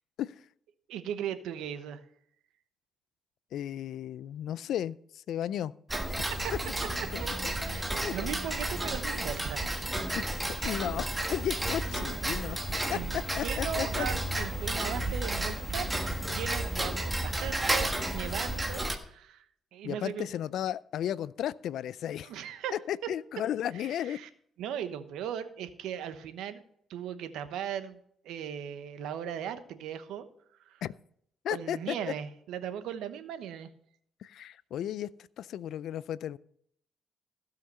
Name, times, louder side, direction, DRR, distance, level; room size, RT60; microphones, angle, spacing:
voice 1, 0.9-2.0 6.4-6.5 7.2-9.7 12.9-13.1 13.4-16.0 16.3-19.4 19.7-20.3 22.2-22.7 23.7-24.3 24.6-26.6 26.9-28.0 28.2-30.2 30.7-30.8 31.5-33.7, right 9 dB, 90° right, 11 dB, 1.0 m, -38 dB
voice 2, 3.5-5.7 7.1-7.5 8.0-8.1 10.1-10.4 10.6-12.6 12.9-13.0 13.4-14.1 19.8-22.3 22.7-24.2 30.8-30.9 31.4-31.9 34.2-35.1 35.4-36.4, left 11 dB, 75° left, 19 dB, 0.4 m, -34 dB
Tick-tock, 5.9-19.0, right 1 dB, 10° right, 1.4 m, -32 dB
15.5 x 5.7 x 5.5 m, 0.67 s
cardioid pair, 90°, 0 cm